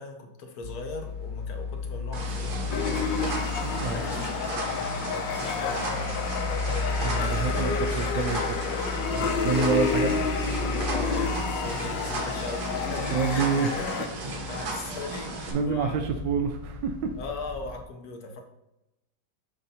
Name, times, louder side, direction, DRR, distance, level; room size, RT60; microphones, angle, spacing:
voice 1, 0.0-2.9 3.4-6.2 7.4-8.5 10.9-16.0 17.2-18.4, left 2 dB, 60° left, 4 dB, 1.3 m, -39 dB
sound 1, 0.6-17.8, left 3 dB, 45° left, 2.1 m, -35 dB
sound 2, 2.1-15.5, right 2 dB, 60° right, 1.5 m, -35 dB
sound 3, 2.7-14.1, left 6 dB, 85° left, 1.4 m, -30 dB
voice 2, 3.6-4.1 7.0-8.5 9.1-10.5 13.1-13.8 15.5-17.1, right 6 dB, 85° right, 6 dB, 1.3 m, -28 dB
6.9 x 2.6 x 5.5 m, 0.90 s
omnidirectional pair, 1.9 m